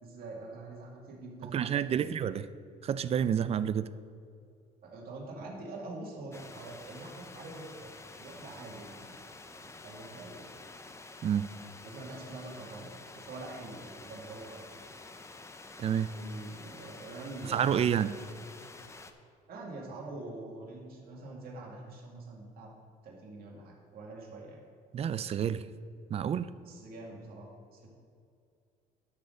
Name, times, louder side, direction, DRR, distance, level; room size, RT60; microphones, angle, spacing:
voice 1, 0.0-1.5 1.8-2.1 4.8-7.9 8.2-9.2 9.6-10.4 11.8-14.7 16.2-18.2 19.5-22.7 23.0-24.6 26.6-27.9, right 2 dB, 65° right, -2 dB, 2.1 m, -45 dB
voice 2, 1.4-2.4 2.8-3.9 11.2-11.5 15.8-16.1 17.5-18.2 24.9-25.6 26.1-26.5, right 8 dB, 35° right, 15 dB, 0.4 m, -29 dB
sound 1, 6.3-19.1, left 3 dB, 15° left, 0.6 m, -49 dB
11.5 x 4.1 x 6.5 m, 2.4 s
cardioid pair, 110°, 17 cm